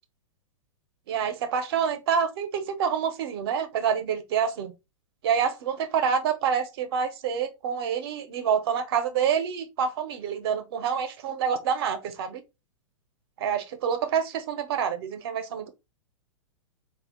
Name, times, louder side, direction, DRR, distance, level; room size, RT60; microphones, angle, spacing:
voice 1, 1.1-4.7 5.2-12.4 13.4-15.7, right 7 dB, 50° right, 0.9 m, -27 dB
4.1 x 2.4 x 3.5 m
figure-of-eight pair, 105°, 17 cm